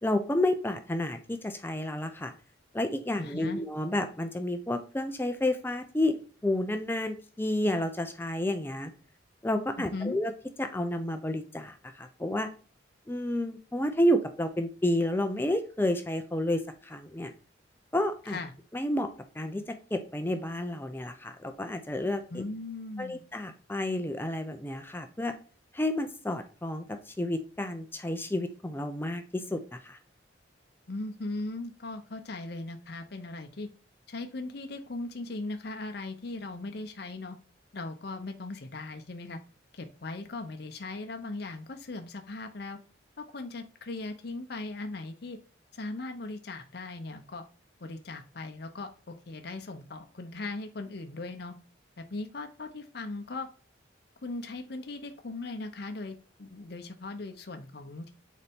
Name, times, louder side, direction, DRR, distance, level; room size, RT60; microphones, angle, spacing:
voice 1, 0.0-2.3 2.7-6.2 6.4-8.9 9.4-10.3 10.6-12.5 13.1-17.3 17.9-18.4 18.7-19.1 19.3-22.4 23.0-25.3 25.7-30.0, left 1 dB, 10° left, 7 dB, 0.5 m, -30 dB
voice 2, 3.2-3.6 9.8-10.1 18.3-18.5 22.3-23.2 30.9-33.7 34.1-37.4 37.7-39.4 39.7-42.8 43.2-45.4 45.7-47.4 47.8-51.5 52.0-53.5 54.2-58.1, left 2 dB, 55° left, 6 dB, 0.7 m, -38 dB
6.7 x 4.2 x 3.5 m, 0.39 s
head